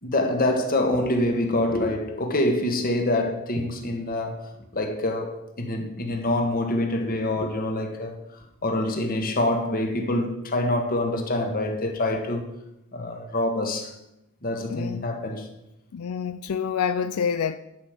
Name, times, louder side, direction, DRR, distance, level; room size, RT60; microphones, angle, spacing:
voice 1, 0.0-8.1 8.6-12.5 12.9-13.9 14.4-15.5, left 1 dB, 40° left, 1.6 m, -26 dB
voice 2, 14.7-15.1 15.9-17.6, left 7 dB, 80° left, 0.4 m, -27 dB
11.0 x 5.4 x 7.4 m
head